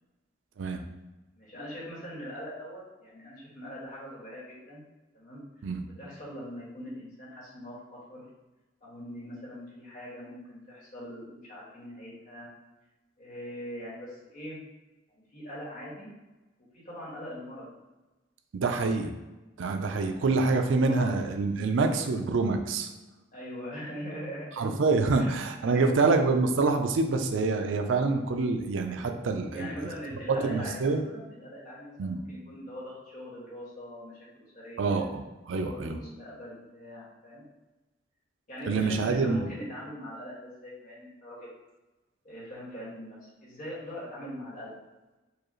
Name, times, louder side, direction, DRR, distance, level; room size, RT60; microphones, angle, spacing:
voice 1, 1.3-4.8 5.1-5.4 6.0-8.2 8.8-12.5 13.2-14.6 15.1-16.1 16.7-17.7 18.6-18.9 20.0-20.2 20.8-21.1 23.3-24.7 25.1-26.0 29.4-37.4 38.5-41.5 42.2-44.7, equal, 45° left, -6 dB, 1.5 m, -42 dB
voice 2, 18.5-19.1 19.6-22.9 24.6-29.9 30.4-31.0 32.0-32.2 34.8-36.0 38.7-39.5, right 3 dB, 85° right, 6 dB, 0.5 m, -26 dB
4.7 x 2.4 x 3.1 m, 1.1 s
head